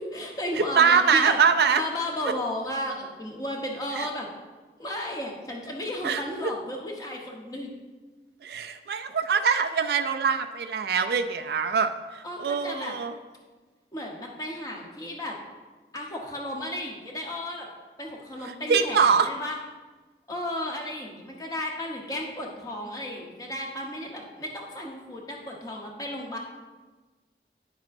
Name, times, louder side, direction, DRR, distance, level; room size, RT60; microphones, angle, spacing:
voice 1, 0.0-1.4 1.7-4.3 4.8-7.7 12.2-13.0 13.9-15.4 15.9-17.7 18.0-19.6 20.3-26.4, left 1 dB, 20° left, -1 dB, 1.0 m, -34 dB
voice 2, 0.8-1.8 4.0-4.1 6.0-6.2 8.4-13.1 18.4-19.3, right 6 dB, 60° right, 8 dB, 0.4 m, -23 dB
9.6 x 7.3 x 2.6 m, 1.3 s
head